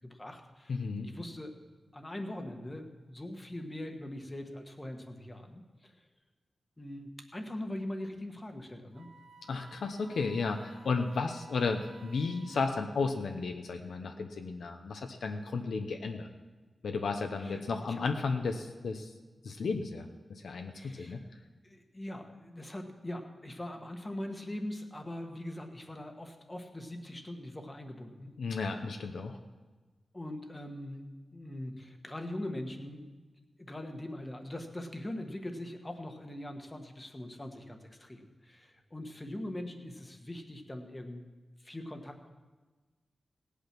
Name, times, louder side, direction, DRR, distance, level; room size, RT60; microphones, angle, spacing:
voice 1, 0.0-1.5 1.9-6.1 6.8-9.1 17.4-17.6 17.9-18.0 18.4-18.6 20.7-21.3 21.6-28.3 30.1-33.2 33.6-41.2 41.6-42.3, left 1 dB, 15° left, 5 dB, 1.3 m, -42 dB
voice 2, 0.7-1.1 9.5-16.3 16.8-19.1 19.4-21.2 28.4-29.3, left 4 dB, 75° left, 4 dB, 0.9 m, -33 dB
Wind instrument woodwind instrument, 8.9-13.1, right 3 dB, 55° right, 1.0 m, -57 dB
18.0 x 8.5 x 6.0 m, 1.3 s
wide cardioid pair, 165°, 0 cm